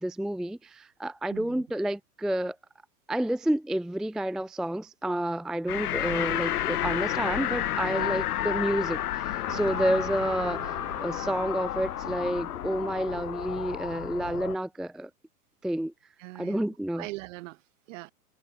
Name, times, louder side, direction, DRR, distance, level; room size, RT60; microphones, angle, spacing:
voice 1, 0.0-2.6 3.1-15.1 15.6-15.9 16.4-17.0, right 1 dB, ahead, 0.5 m, -30 dB
voice 2, 1.3-1.6 8.0-8.1 16.2-16.6 17.0-18.1, right 20 dB, 50° right, 4.4 m, -41 dB
sound 1, 5.7-14.6, left 12 dB, 70° left, 0.9 m, -31 dB
Train, 9.5-13.4, right 9 dB, 75° right, 5.4 m, -45 dB
hypercardioid pair, 110°, 46 cm